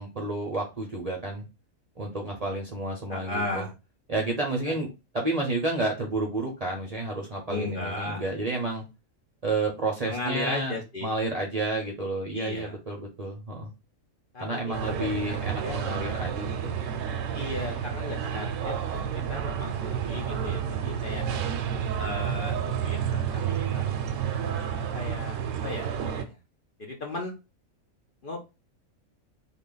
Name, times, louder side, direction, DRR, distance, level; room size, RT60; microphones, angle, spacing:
voice 1, 0.0-1.4 2.0-3.7 4.1-8.8 9.4-10.8 11.0-13.7 14.4-16.7, right 2 dB, 40° right, -1 dB, 0.6 m, -30 dB
voice 2, 3.1-3.7 4.7-4.8 7.5-8.2 10.0-11.1 12.3-12.7 14.3-15.4 15.6-15.8 17.3-21.2 22.0-24.0 24.6-26.4 26.8-27.3 28.2-28.4, left 2 dB, 50° left, 1 dB, 0.7 m, -36 dB
sound 1, 14.7-26.2, right 8 dB, 70° right, 0.9 m, -30 dB
3.4 x 2.3 x 3.7 m, 0.27 s
omnidirectional pair, 1.4 m